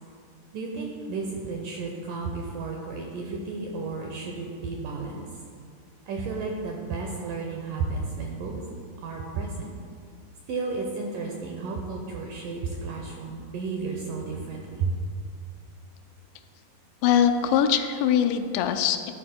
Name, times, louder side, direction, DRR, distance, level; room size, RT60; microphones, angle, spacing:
voice 1, 0.5-5.2 6.1-8.6 9.0-9.8 10.5-14.9, right 4 dB, 80° right, 0 dB, 2.0 m, -32 dB
voice 2, 17.0-19.1, left 8 dB, 90° left, 8 dB, 2.8 m, -22 dB
14.0 x 11.5 x 2.2 m, 2.2 s
omnidirectional pair, 4.8 m